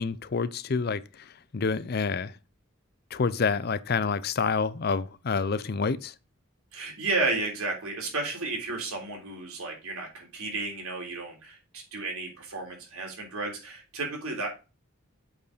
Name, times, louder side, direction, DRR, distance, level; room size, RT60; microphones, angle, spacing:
voice 1, 0.0-2.4 3.1-6.1, left 5 dB, 45° left, 0.5 m, -28 dB
voice 2, 6.7-14.6, right 3 dB, 85° right, 3.5 m, -32 dB
8.3 x 4.6 x 5.0 m
head